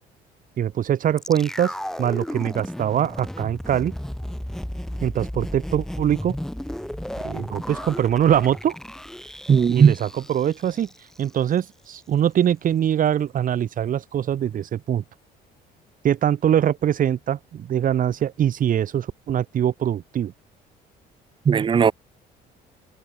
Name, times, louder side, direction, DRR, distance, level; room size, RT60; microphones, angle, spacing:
voice 1, 0.6-1.7 2.0-3.9 5.0-6.4 7.2-8.7 9.7-10.9 11.2-15.0 16.0-20.3, right 10 dB, 55° right, 3.7 m, -23 dB
sound 1, 1.2-11.3 11.6-11.7, equal, 5° left, 2.5 m, -34 dB
voice 2, 9.5-9.9 21.5-21.9, right 7 dB, 30° right, 0.6 m, -16 dB
cardioid pair, 110°, 17 cm